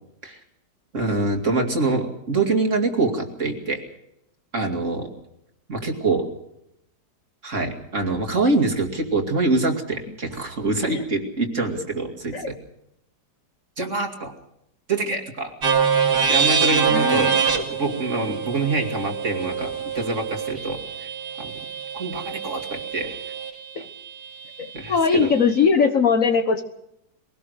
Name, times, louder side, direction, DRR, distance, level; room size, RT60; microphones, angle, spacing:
voice 1, 0.9-3.8 4.5-5.1 5.7-6.3 7.4-12.5 13.8-14.3 14.9-15.5 16.3-17.3 17.8-21.1 21.4-21.6 21.9-23.2 24.7-25.3, right 3 dB, 45° right, 4 dB, 2.7 m, -25 dB
sound 1, 15.6-23.5, right 6 dB, 70° right, 3.0 m, -24 dB
voice 2, 16.9-17.3 23.8-23.9 24.6-26.6, left 5 dB, 50° left, 7 dB, 1.5 m, -20 dB
22.5 x 18.0 x 6.5 m, 0.78 s
omnidirectional pair, 1.9 m